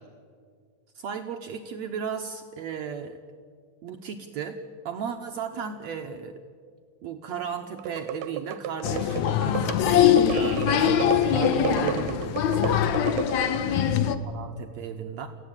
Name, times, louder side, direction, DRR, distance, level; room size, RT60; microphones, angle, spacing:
voice 1, 1.0-3.2 3.8-4.6 4.9-6.3 7.0-9.8 10.7-12.8 14.2-15.3, right 7 dB, 65° right, 4 dB, 1.9 m, -35 dB
sound 1, 7.8-13.9, right 9 dB, 85° right, 2.4 m, -34 dB
Applause, 8.8-14.2, left 9 dB, 70° left, 2.1 m, -23 dB
voice 2, 9.7-10.0 10.3-11.8 13.4-14.1, right 1 dB, 15° left, 0 dB, 2.0 m, -37 dB
28.5 x 16.0 x 8.9 m, 2.1 s
omnidirectional pair, 3.8 m